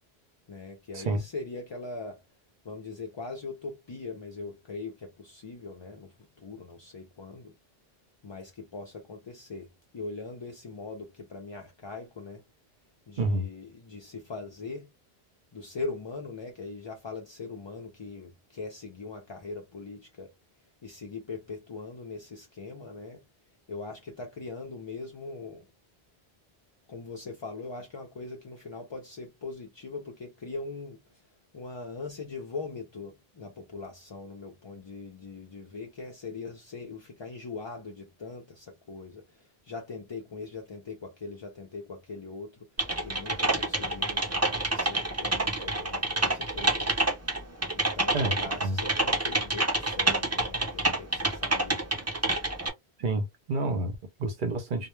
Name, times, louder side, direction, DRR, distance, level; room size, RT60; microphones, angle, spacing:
voice 1, 0.5-2.2 2.6-7.6 8.2-12.4 13.1-14.9 15.5-20.3 20.8-23.2 23.7-25.7 26.9-31.2 31.5-42.7 43.0-47.1 47.7-51.9, left 3 dB, 45° left, 0.3 m, -41 dB
voice 2, 13.2-13.5 48.1-48.4 48.6-48.8 53.0-54.9, right 2 dB, 55° right, 0.7 m, -29 dB
Typing, 42.8-52.7, right 2 dB, 20° right, 0.5 m, -27 dB
2.1 x 2.1 x 3.0 m
omnidirectional pair, 1.1 m